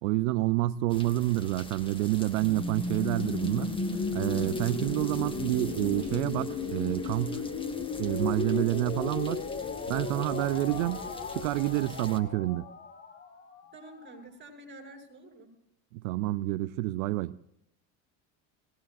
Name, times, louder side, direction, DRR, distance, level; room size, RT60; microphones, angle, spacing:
voice 1, 0.0-3.7 4.1-7.4 8.0-9.4 9.9-12.7 15.9-17.4, right 17 dB, 80° right, 0.6 m, -28 dB
sound 1, 0.9-12.2, left 2 dB, 15° left, 1.7 m, -45 dB
sound 2, 2.3-14.1, left 4 dB, 30° left, 1.8 m, -35 dB
voice 2, 13.7-15.5, right 1 dB, 30° right, 7.0 m, -48 dB
22.5 x 19.0 x 2.5 m
supercardioid pair, 100°, 40 cm